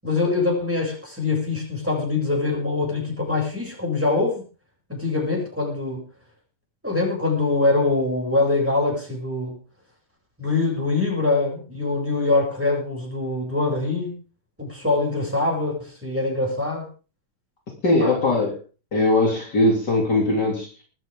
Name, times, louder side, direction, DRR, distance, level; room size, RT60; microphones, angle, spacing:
voice 1, 0.0-4.4 4.9-6.0 6.8-9.6 10.4-14.2 14.6-16.9 18.0-18.1, left 3 dB, 5° right, -2 dB, 7.3 m, -23 dB
voice 2, 17.8-18.6 18.9-20.8, left 2 dB, 50° left, 0 dB, 3.6 m, -20 dB
20.5 x 14.0 x 3.7 m, 0.36 s
omnidirectional pair, 2.3 m